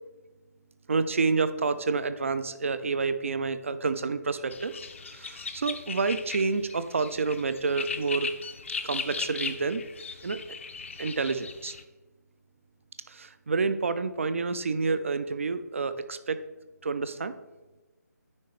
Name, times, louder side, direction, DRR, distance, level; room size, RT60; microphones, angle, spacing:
voice 1, 0.9-4.8 5.1-8.3 8.8-9.8 10.2-10.4 11.0-11.8 13.1-16.4 16.8-17.3, right 4 dB, 45° right, 12 dB, 0.4 m, -29 dB
sound 1, 4.5-11.8, left 5 dB, 45° left, 0.4 m, -38 dB
9.7 x 4.2 x 3.1 m, 1.1 s
figure-of-eight pair, 150°, 10 cm